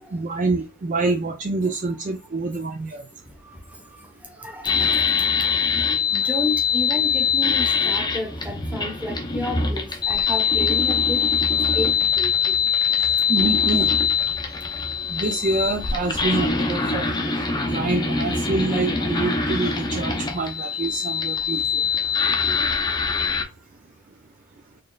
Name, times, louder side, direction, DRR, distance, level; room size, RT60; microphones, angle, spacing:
voice 1, 0.1-3.0 13.3-13.9 15.1-17.2 17.7-21.8, right 3 dB, 35° right, 0.4 m, -26 dB
voice 2, 3.4-4.1 4.4-5.0 6.1-11.2 11.7-11.9 12.2-12.6, left 2 dB, 5° right, 1.0 m, -31 dB
sound 1, 4.6-23.4, left 6 dB, 20° left, 0.6 m, -23 dB
4.3 x 3.1 x 2.3 m
head